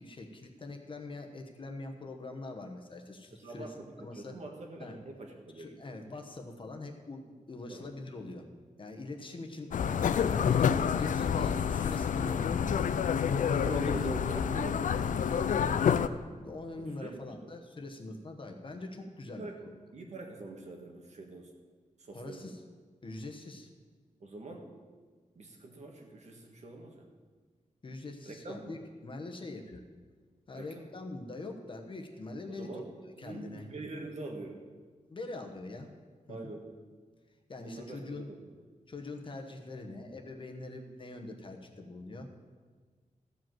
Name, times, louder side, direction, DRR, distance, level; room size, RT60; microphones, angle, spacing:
voice 1, 0.0-3.7 4.0-4.4 4.8-5.0 5.5-8.5 8.8-12.5 13.3-14.1 15.3-15.8 16.4-19.5 22.1-22.6 23.0-23.7 27.8-29.8 30.5-32.8 33.2-33.7 35.1-35.9 36.3-36.5 37.5-38.3 38.9-42.3, left 2 dB, 40° left, 3 dB, 1.1 m, -43 dB
voice 2, 3.3-5.8 7.7-7.9 13.6-15.8 16.8-17.5 19.2-19.6 19.9-21.5 22.0-22.5 24.2-24.7 25.3-27.1 28.2-28.8 30.5-30.9 32.5-32.9 33.2-34.6 36.3-36.7 37.6-38.4, right 2 dB, 60° right, 2 dB, 1.6 m, -44 dB
sound 1, 9.7-16.1, left 7 dB, 75° left, 0.4 m, -28 dB
14.0 x 5.1 x 7.7 m, 1.5 s
wide cardioid pair, 150°, 13 cm